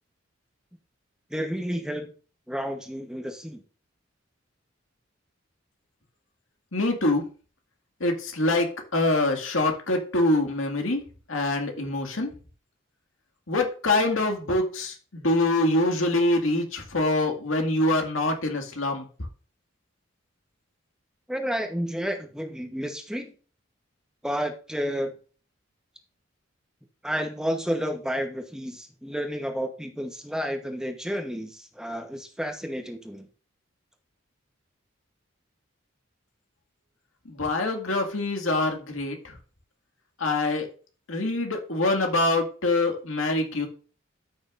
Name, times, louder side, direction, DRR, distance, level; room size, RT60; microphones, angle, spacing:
voice 1, 1.3-2.1 2.5-3.6 21.3-23.3 24.2-25.1 27.0-33.2, equal, 5° right, 5 dB, 1.0 m, -31 dB
voice 2, 6.7-7.2 8.0-11.0 11.3-12.3 13.5-19.0 37.3-39.3 40.2-40.7 41.1-43.7, left 2 dB, 80° left, 3 dB, 2.1 m, -25 dB
13.0 x 6.2 x 2.6 m, 0.37 s
head